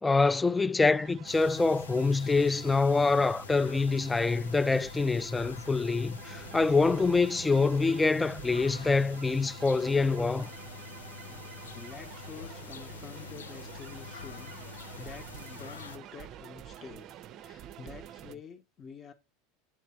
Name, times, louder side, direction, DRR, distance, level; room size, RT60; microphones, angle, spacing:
voice 1, 0.0-10.5, left 3 dB, 15° left, 0.3 m, -25 dB
sound 1, 0.9-18.4, right 11 dB, 50° right, 0.5 m, -48 dB
sound 2, 1.3-16.0, left 7 dB, 90° left, 0.3 m, -46 dB
voice 2, 11.6-19.1, left 6 dB, 35° left, 1.1 m, -48 dB
8.7 x 3.3 x 4.3 m
hypercardioid pair, 90°, 0 cm